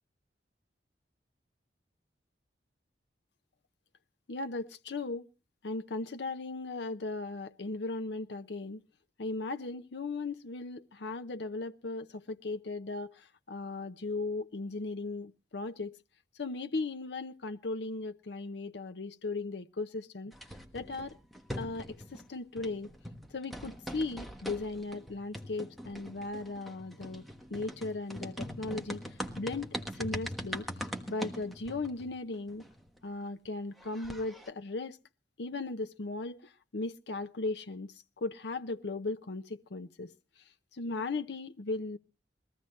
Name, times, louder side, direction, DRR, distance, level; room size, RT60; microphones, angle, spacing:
voice 1, 4.3-5.3 5.6-8.8 9.2-16.0 16.4-20.3 20.7-21.2 21.6-22.9 23.3-27.2 27.5-29.0 29.4-29.7 30.0-30.7 31.1-32.6 33.0-35.0 35.4-40.1 40.7-42.0, left 3 dB, 70° left, 0.7 m, -37 dB
sound 1, 20.3-22.3 22.6-33.0 33.5-33.6 33.8-34.5, equal, ahead, 1.2 m, -42 dB
21.0 x 15.0 x 3.2 m
head